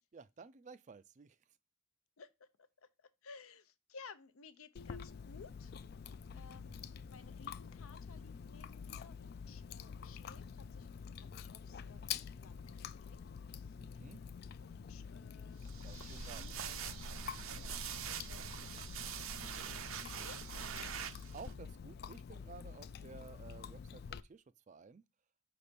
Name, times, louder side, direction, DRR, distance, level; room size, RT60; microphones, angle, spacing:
voice 1, 0.1-1.4 6.3-6.8 13.8-14.2 15.8-16.8 19.3-19.8 21.3-25.0, right 5 dB, 35° right, 0.3 m, -55 dB
voice 2, 2.2-2.5 2.8-5.7 6.3-10.9 11.2-13.2 13.6-14.0 14.6-17.1 17.5-18.8 19.5-20.4, left 5 dB, 80° left, 0.6 m, -58 dB
Chewing mastication, 4.8-24.2, left 6 dB, 45° left, 0.3 m, -47 dB
sound 1, 15.6-21.5, right 7 dB, 75° right, 0.6 m, -44 dB
5.2 x 4.2 x 5.1 m
head